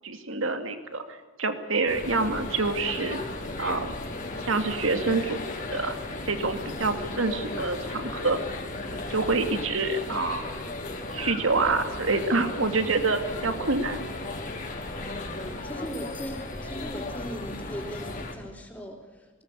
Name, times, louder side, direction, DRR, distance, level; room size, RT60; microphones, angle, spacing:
voice 1, 0.0-3.2 3.6-3.9 4.4-5.9 6.3-8.4 9.1-10.5 11.1-14.0, right 3 dB, 85° right, 7 dB, 2.4 m, -27 dB
sound 1, 1.9-18.4, left 2 dB, 40° left, 4.0 m, -35 dB
voice 2, 15.4-19.3, equal, 10° left, -7 dB, 4.0 m, -39 dB
20.5 x 19.0 x 8.5 m, 1.3 s
head